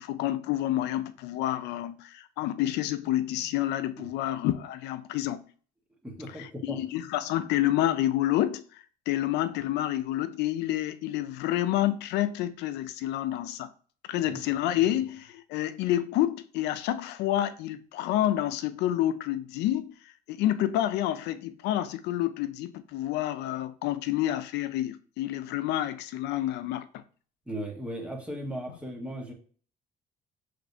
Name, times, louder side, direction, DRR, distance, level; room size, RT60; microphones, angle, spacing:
voice 1, 0.0-5.4 6.3-13.7 14.1-19.9 20.3-27.0, left 13 dB, 85° left, 0.5 m, -29 dB
voice 2, 6.0-6.8 14.3-14.4 27.5-29.3, equal, 5° right, 1.3 m, -37 dB
6.0 x 3.2 x 2.7 m
cardioid pair, 110°, 17 cm